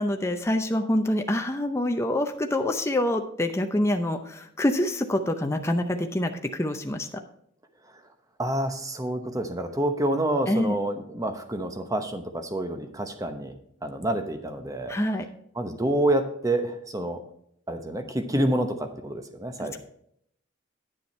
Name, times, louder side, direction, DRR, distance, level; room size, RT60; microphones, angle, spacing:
voice 1, 0.0-7.1 10.5-10.8 14.9-15.2 19.6-19.8, left 1 dB, 15° left, 5 dB, 0.6 m, -26 dB
voice 2, 8.4-13.5 13.8-15.0 15.6-17.2 17.7-19.8, right 1 dB, 15° right, 7 dB, 0.9 m, -28 dB
10.0 x 6.8 x 4.3 m, 0.69 s
head